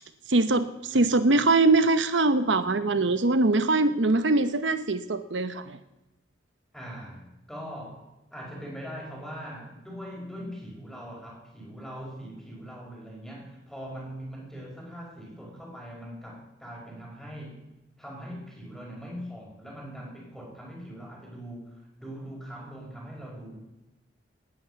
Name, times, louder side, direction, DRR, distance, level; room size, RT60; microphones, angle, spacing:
voice 1, 0.3-5.8, right 2 dB, 85° right, 11 dB, 1.0 m, -22 dB
voice 2, 6.7-17.6 18.0-23.6, equal, ahead, -1 dB, 5.5 m, -41 dB
19.0 x 9.2 x 8.0 m, 0.94 s
head